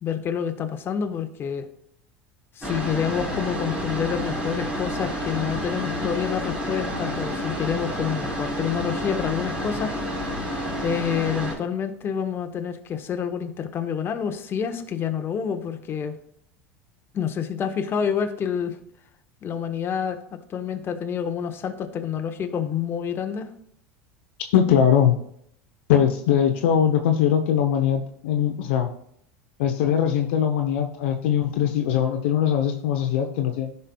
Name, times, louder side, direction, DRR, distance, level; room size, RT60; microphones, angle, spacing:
voice 1, 0.0-1.7 2.6-10.0 10.8-16.2 17.1-18.8 19.4-20.2 20.5-23.5, left 7 dB, 35° left, 6 dB, 1.1 m, -28 dB
sound 1, 2.6-11.6, equal, 15° right, 3.2 m, -29 dB
voice 2, 24.5-25.2 25.9-28.9 29.6-33.7, left 9 dB, 70° left, 4 dB, 0.8 m, -21 dB
14.5 x 5.5 x 2.3 m, 0.68 s
hypercardioid pair, 80°, 7 cm